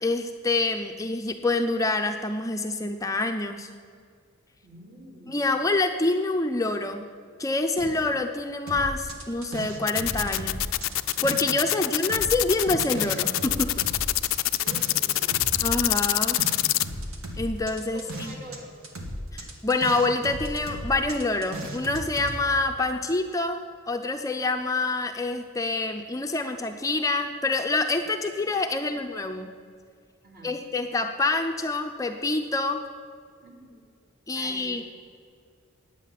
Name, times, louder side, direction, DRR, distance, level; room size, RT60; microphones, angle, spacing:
voice 1, 0.0-3.7 5.3-7.0 7.4-10.6 11.2-13.9 15.6-16.4 17.4-18.3 19.3-23.6 23.9-29.5 30.4-32.8 34.3-34.8, left 2 dB, 15° left, 5 dB, 0.5 m, -26 dB
voice 2, 4.6-5.4 11.6-11.9 14.6-15.5 17.9-18.7 30.2-30.6 33.4-33.8 34.3-34.8, equal, 50° right, -1 dB, 2.5 m, -46 dB
sound 1, 7.8-8.6 8.9-9.0 10.1-10.8 11.3-11.4 12.7-13.2 13.5-14.1, right 1 dB, 70° right, 3.2 m, -42 dB
sound 2, 8.7-11.7 12.0-18.6 18.8-22.4, right 1 dB, 90° right, 1.5 m, -36 dB
sound 3, 9.9-16.9, left 17 dB, 75° left, 0.4 m, -24 dB
10.0 x 8.3 x 7.4 m, 2.1 s
head